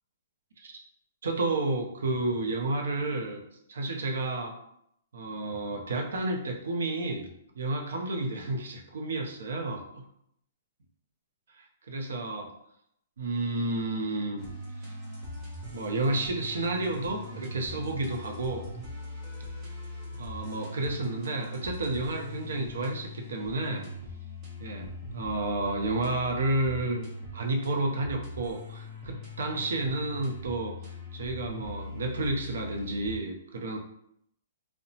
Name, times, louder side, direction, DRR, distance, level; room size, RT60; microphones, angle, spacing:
voice 1, 1.2-3.4 3.7-4.6 5.1-7.3 7.6-10.0 11.5-12.5 13.2-14.4 15.7-18.7 20.2-23.8 24.6-30.7 31.1-33.8, right 2 dB, 70° right, 3 dB, 0.6 m, -31 dB
sound 1, 14.4-33.1, left 1 dB, 20° right, 0.4 m, -41 dB
2.8 x 2.1 x 2.8 m, 0.73 s
hypercardioid pair, 180°, 0 cm